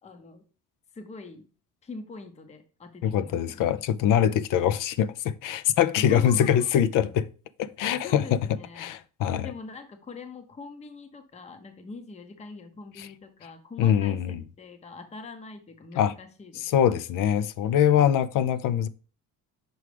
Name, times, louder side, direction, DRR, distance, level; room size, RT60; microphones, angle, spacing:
voice 1, 0.0-0.4 0.9-1.5 1.8-3.6 6.0-6.7 8.0-8.9 9.4-16.6, left 4 dB, 20° left, 0.7 m, -43 dB
voice 2, 3.0-7.3 7.6-8.4 8.8-9.5 13.0-13.1 13.8-14.4 16.0-16.2 16.6-18.9, left 9 dB, 65° left, 0.5 m, -23 dB
6.2 x 4.8 x 3.3 m
cardioid pair, 140°, 35 cm